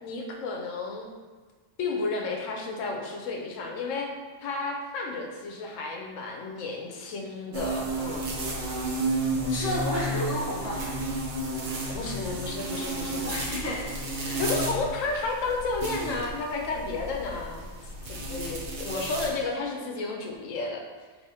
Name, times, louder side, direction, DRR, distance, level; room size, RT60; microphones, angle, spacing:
voice 1, 0.0-1.1 1.8-4.1 4.4-8.3 11.9-13.5 14.4-20.8, left 3 dB, 85° left, 1 dB, 1.0 m, -32 dB
sound 1, 7.5-19.3, right 2 dB, 50° right, 0.6 m, -32 dB
voice 2, 9.4-10.8 13.3-14.4, left 1 dB, 20° left, -4 dB, 0.5 m, -31 dB
4.8 x 3.2 x 2.7 m, 1.4 s
omnidirectional pair, 1.3 m